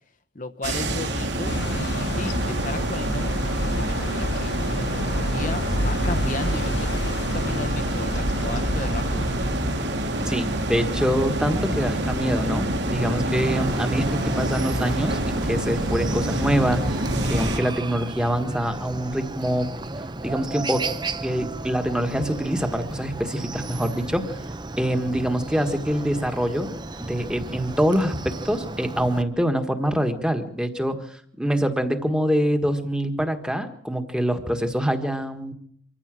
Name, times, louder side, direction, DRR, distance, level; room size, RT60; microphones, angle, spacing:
voice 1, 0.3-9.3, left 2 dB, 40° left, 8 dB, 1.0 m, -35 dB
sound 1, 0.6-17.6, right 1 dB, 65° right, 2.9 m, -26 dB
sound 2, 1.4-9.5, left 1 dB, 65° left, 1.2 m, -29 dB
voice 2, 10.2-19.7 20.2-20.8 21.2-24.3 24.8-26.7 27.1-35.5, equal, 5° right, 7 dB, 1.6 m, -25 dB
Chicken rooster, 13.3-29.2, right 2 dB, 25° right, 0.8 m, -34 dB
25.0 x 15.0 x 7.7 m, 0.65 s
head